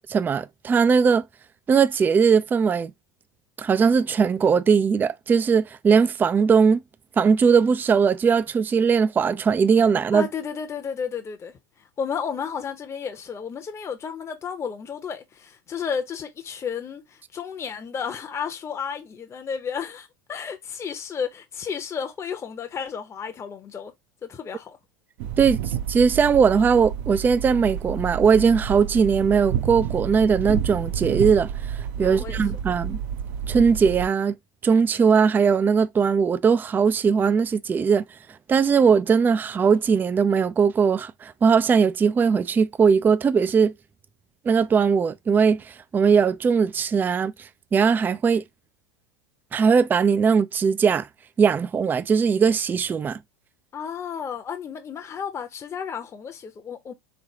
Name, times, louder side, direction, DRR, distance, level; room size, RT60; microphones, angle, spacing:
voice 1, 0.1-1.2 1.7-2.9 3.6-6.8 7.2-10.3 25.4-25.6 25.9-33.0 33.5-34.3 34.6-38.0 38.5-43.7 44.5-47.3 47.7-48.4 49.5-51.1 51.4-53.2, right 6 dB, 20° right, 0.3 m, -20 dB
voice 2, 10.1-11.5 12.0-23.9 24.2-24.8 32.0-32.4 53.7-56.9, left 7 dB, 25° left, 0.8 m, -32 dB
sound 1, 25.2-34.1, right 8 dB, 60° right, 0.7 m, -30 dB
3.7 x 3.4 x 2.8 m
hypercardioid pair, 90°, 11 cm